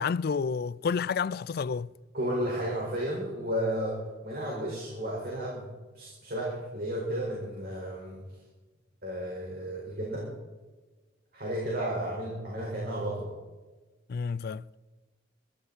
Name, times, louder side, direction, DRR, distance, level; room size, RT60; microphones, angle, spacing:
voice 1, 0.0-1.9 14.1-14.6, left 5 dB, 55° left, 0.4 m, -30 dB
voice 2, 2.1-8.2 9.0-10.3 11.3-13.3, right 1 dB, 55° right, 4.9 m, -33 dB
22.5 x 13.5 x 4.2 m
head